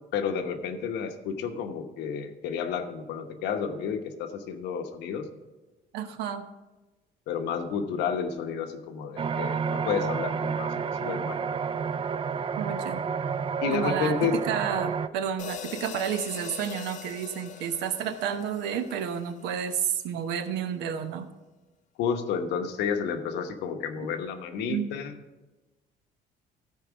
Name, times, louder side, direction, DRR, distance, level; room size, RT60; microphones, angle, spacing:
voice 1, 0.1-5.3 7.3-10.7 11.0-11.4 13.6-14.3 22.0-25.1, left 6 dB, 85° left, 6 dB, 1.0 m, -31 dB
voice 2, 5.9-6.4 12.6-13.0 13.7-21.3 24.7-24.9, right 8 dB, 90° right, 9 dB, 0.9 m, -31 dB
sound 1, 9.2-15.1, right 6 dB, 30° right, 0.4 m, -30 dB
sound 2, 15.4-19.8, left 8 dB, 45° left, 0.7 m, -42 dB
13.5 x 4.8 x 6.0 m, 1.2 s
cardioid pair, 110°, 17 cm